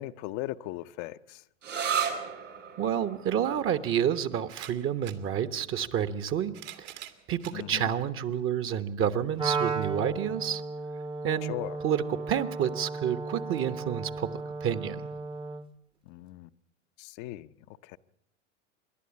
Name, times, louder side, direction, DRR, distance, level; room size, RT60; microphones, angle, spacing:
voice 1, 0.0-1.4 7.5-7.9 11.4-11.8 16.1-16.5 17.0-17.5 17.8-18.0, left 15 dB, 50° left, 0.8 m, -38 dB
sound 1, 1.6-9.0, right 7 dB, 90° right, 3.1 m, -38 dB
voice 2, 2.8-6.9 7.3-10.6 11.2-11.5 11.8-15.1, right 9 dB, 35° right, 1.2 m, -29 dB
sound 2, 4.4-5.2 6.2-7.6 8.3-8.4 9.7-9.8, right 13 dB, 60° right, 2.1 m, -45 dB
Wind instrument woodwind instrument, 9.4-15.7, right 4 dB, 15° right, 0.9 m, -35 dB
27.0 x 11.5 x 8.4 m
hypercardioid pair, 95°, 36 cm